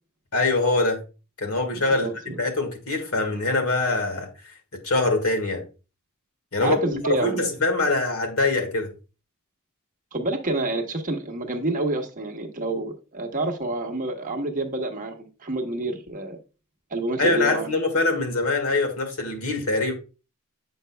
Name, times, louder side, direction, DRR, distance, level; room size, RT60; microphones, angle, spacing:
voice 1, 0.3-1.0 1.4-2.1 2.4-4.3 4.8-5.6 6.5-6.8 7.1-8.9 17.2-19.9, left 3 dB, 75° left, 1.7 m, -23 dB
voice 2, 1.9-2.4 6.6-7.4 10.1-16.4 16.9-17.7, right 2 dB, 35° right, 1.0 m, -28 dB
7.7 x 5.8 x 2.2 m
head